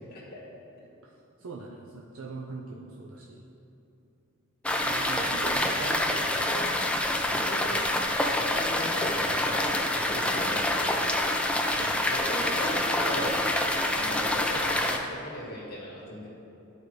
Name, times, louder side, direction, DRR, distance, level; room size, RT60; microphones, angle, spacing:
voice 1, 1.4-3.4 4.8-7.1 9.0-9.1 11.7-12.1, right 3 dB, 80° right, -2 dB, 0.6 m, -41 dB
sound 1, 4.6-15.0, left 1 dB, 5° left, 0.4 m, -27 dB
voice 2, 7.2-11.1 11.9-13.4 13.9-16.3, left 1 dB, 45° left, -5 dB, 1.6 m, -38 dB
12.0 x 4.8 x 3.2 m, 2.8 s
head